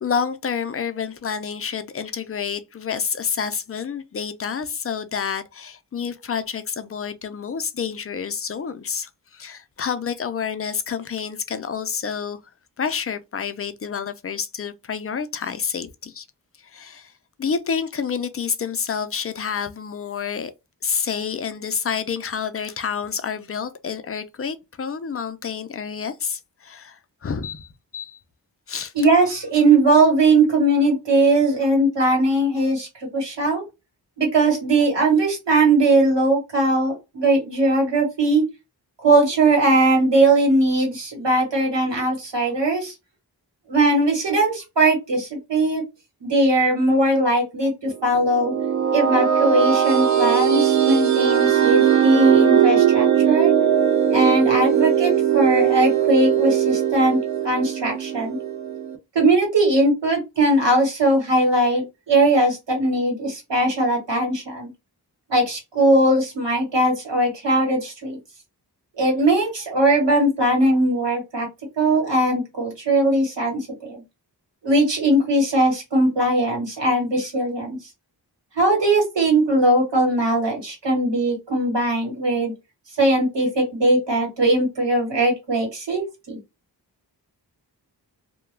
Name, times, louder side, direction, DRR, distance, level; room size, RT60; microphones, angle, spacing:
voice 1, 0.0-12.4 12.8-16.2 16.6-17.1 17.4-20.5 20.8-28.2 28.7-28.9, left 6 dB, 35° left, 0.4 m, -28 dB
voice 2, 28.9-33.6 34.2-38.4 39.0-42.9 43.7-45.8 46.2-48.5 48.9-53.5 54.1-57.2 57.4-58.4 59.1-64.7 65.3-68.2 69.0-71.5 71.8-74.0 74.6-77.8 78.5-82.5 83.0-86.4, right 2 dB, 80° right, 1.4 m, -20 dB
sound 1, 48.1-59.0, right 9 dB, 45° right, 0.6 m, -19 dB
2.2 x 2.2 x 3.2 m
wide cardioid pair, 60°, 42 cm